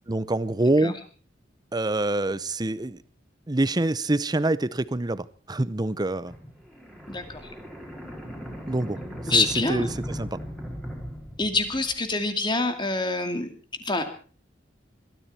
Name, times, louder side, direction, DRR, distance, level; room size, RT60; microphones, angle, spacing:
voice 1, 0.1-0.9 1.7-3.0 3.5-6.3 8.7-9.0 9.2-10.4, right 2 dB, 20° right, 0.7 m, -26 dB
sound 1, 6.3-12.1, equal, ahead, 4.4 m, -38 dB
voice 2, 7.1-7.5 9.3-9.9 11.4-13.5 13.8-14.0, left 3 dB, 25° left, 2.4 m, -26 dB
21.5 x 13.5 x 4.3 m
head